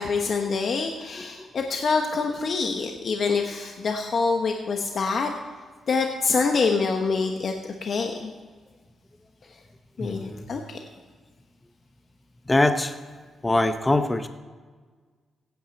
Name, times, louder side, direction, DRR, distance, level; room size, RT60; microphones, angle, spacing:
voice 1, 0.0-5.3 5.9-7.5 7.8-8.3 10.0-10.8, left 4 dB, 55° left, 3 dB, 1.1 m, -25 dB
voice 2, 10.0-10.5 12.5-13.0 13.4-14.3, left 2 dB, 15° left, 9 dB, 0.7 m, -23 dB
16.0 x 9.3 x 4.2 m, 1.5 s
cardioid pair, 100°, 0 cm